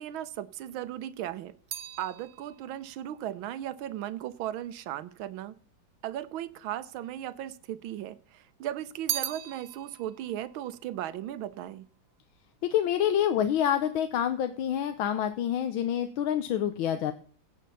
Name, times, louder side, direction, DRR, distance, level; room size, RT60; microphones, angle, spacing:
voice 1, 0.0-1.5 2.0-5.5 6.0-11.9, right 12 dB, 85° right, 15 dB, 1.6 m, -36 dB
sound 1, 0.7-5.2 5.9-6.7 7.0-8.2 8.5-12.0 12.3-12.8, right 10 dB, 60° right, 0.9 m, -40 dB
voice 2, 12.7-17.1, left 10 dB, 80° left, 8 dB, 1.6 m, -27 dB
16.5 x 5.6 x 6.8 m, 0.43 s
omnidirectional pair, 2.2 m